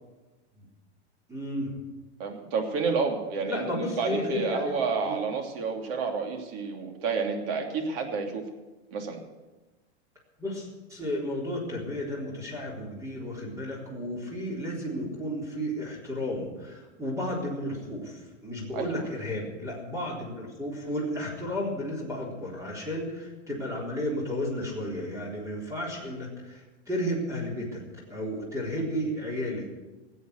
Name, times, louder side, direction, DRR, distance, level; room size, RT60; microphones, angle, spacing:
voice 1, 1.3-1.7 3.5-5.2 10.4-27.8 28.1-29.7, equal, 10° right, -3 dB, 3.8 m, -33 dB
voice 2, 2.2-8.5 8.9-9.2 18.7-19.1, right 5 dB, 60° right, 3 dB, 2.9 m, -30 dB
17.5 x 8.0 x 8.0 m, 1.1 s
supercardioid pair, 140°, 34 cm